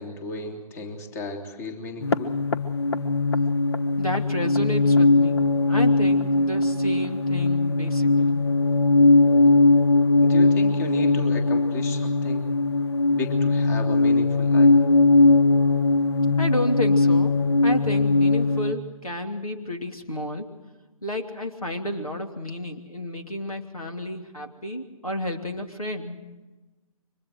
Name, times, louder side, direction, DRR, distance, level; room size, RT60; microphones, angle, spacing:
voice 1, 0.0-2.4 10.2-12.5 13.1-14.8, left 2 dB, 30° left, 3 dB, 3.2 m, -34 dB
sound 1, 2.0-18.7, left 2 dB, 45° left, 1.1 m, -20 dB
voice 2, 4.0-8.4 16.4-20.5 21.0-26.2, left 1 dB, 85° left, 4 dB, 2.9 m, -31 dB
29.5 x 24.5 x 4.6 m, 1.1 s
figure-of-eight pair, 135°, 18 cm